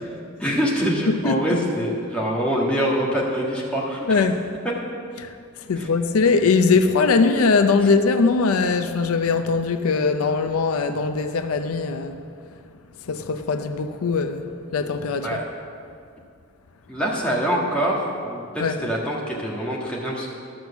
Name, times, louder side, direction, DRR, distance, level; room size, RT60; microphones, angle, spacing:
voice 1, 0.4-4.3 5.8-5.9 15.2-15.4 16.9-20.3, equal, 5° left, -5 dB, 1.6 m, -24 dB
voice 2, 1.1-1.4 4.1-4.4 5.2-5.3 5.7-12.2 13.1-14.5 14.7-15.4 18.6-18.8, left 4 dB, 85° left, 8 dB, 0.5 m, -21 dB
12.0 x 6.1 x 7.0 m, 2.3 s
head